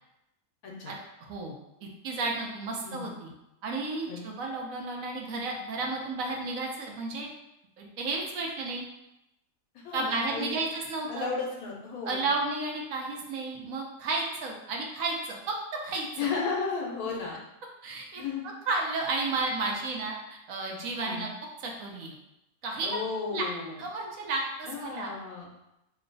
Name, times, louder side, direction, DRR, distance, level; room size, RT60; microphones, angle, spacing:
voice 1, 0.9-3.3 3.6-7.3 7.8-8.8 9.9-11.3 12.1-15.5 15.8-16.1 17.8-18.2 18.7-21.3 21.6-22.1 22.6-23.0 23.3-23.4 23.8-25.1, right 3 dB, 70° right, 0 dB, 1.0 m, -32 dB
voice 2, 9.8-10.6 11.1-12.2 16.2-17.4 18.2-18.4 20.9-21.2 22.8-23.8 24.6-25.5, left 5 dB, 80° left, -2 dB, 1.2 m, -34 dB
3.0 x 2.2 x 3.8 m, 0.89 s
omnidirectional pair, 1.5 m